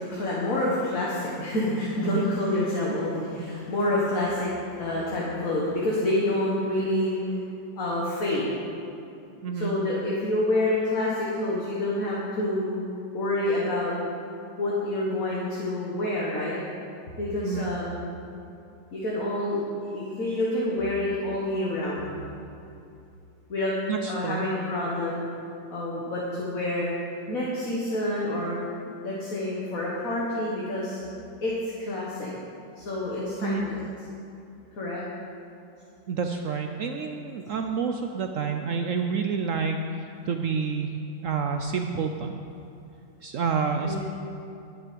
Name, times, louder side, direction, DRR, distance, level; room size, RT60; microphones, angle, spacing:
voice 1, 0.0-7.4 7.8-8.5 9.5-12.8 13.1-13.9 14.6-16.6 17.2-18.0 18.9-22.2 23.5-23.7 24.1-25.3 25.7-26.9 27.3-28.6 29.0-31.0 31.4-32.3 32.8-33.8 34.8-35.0 43.7-44.0, left 1 dB, 50° left, -5 dB, 1.9 m, -28 dB
voice 2, 9.4-9.7 17.4-17.7 23.9-24.4 33.4-33.7 36.1-40.9 41.2-42.3 43.2-44.0, right 5 dB, 75° right, 5 dB, 0.7 m, -28 dB
12.5 x 9.8 x 5.2 m, 2.7 s
omnidirectional pair, 2.0 m